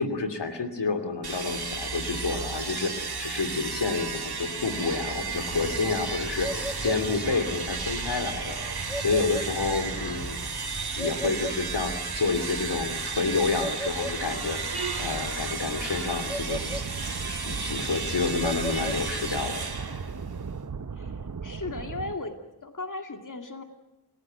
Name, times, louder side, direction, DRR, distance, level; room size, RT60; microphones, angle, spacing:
voice 1, 0.0-8.6 9.0-10.4 11.0-14.6 15.0-16.6 17.3-19.6, left 4 dB, 85° left, 9 dB, 2.8 m, -29 dB
sound 1, 1.2-20.7, right 4 dB, 65° right, 2.5 m, -33 dB
sound 2, 5.1-19.5, equal, 5° right, 1.8 m, -39 dB
sound 3, 16.5-22.2, right 5 dB, 45° right, 1.0 m, -37 dB
voice 2, 21.0-22.3 22.6-23.6, left 3 dB, 50° left, 5 dB, 2.5 m, -36 dB
28.5 x 17.0 x 9.1 m, 0.97 s
wide cardioid pair, 90°, 40 cm